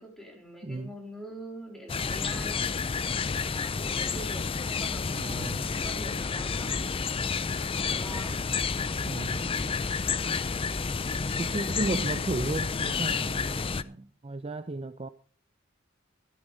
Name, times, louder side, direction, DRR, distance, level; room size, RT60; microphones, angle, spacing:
voice 1, 0.0-2.7 3.5-6.8 7.7-8.4, equal, ahead, 3.7 m, -44 dB
sound 1, 1.9-13.8, left 5 dB, 25° left, 0.5 m, -30 dB
voice 2, 5.1-5.7 9.0-9.5 11.4-15.1, right 2 dB, 30° right, 0.6 m, -34 dB
13.0 x 12.5 x 4.0 m
head